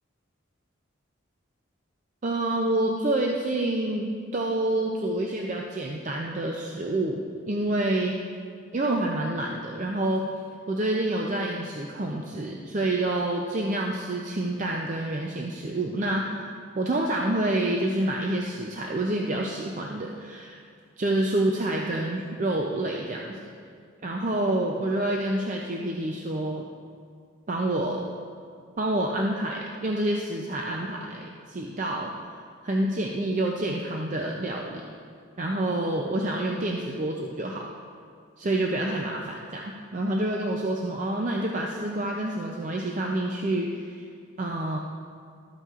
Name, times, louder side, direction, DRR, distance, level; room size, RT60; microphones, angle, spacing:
voice 1, 2.2-8.2 8.7-10.2 10.7-20.6 21.0-23.5 24.0-26.6 27.5-28.0 28.8-32.1 32.6-34.9 35.4-37.7 38.4-44.0 44.4-44.8, right 1 dB, 35° right, 0 dB, 0.5 m, -28 dB
13.0 x 8.2 x 2.4 m, 2.3 s
head